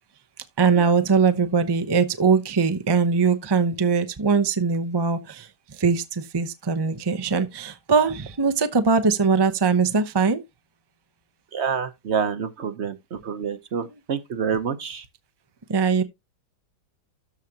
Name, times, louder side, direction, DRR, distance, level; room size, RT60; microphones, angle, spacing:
voice 1, 0.6-10.4 15.7-16.0, right 5 dB, 35° right, 0.4 m, -21 dB
voice 2, 11.5-15.0, right 7 dB, 50° right, 1.0 m, -28 dB
13.0 x 4.9 x 2.8 m
omnidirectional pair, 1.8 m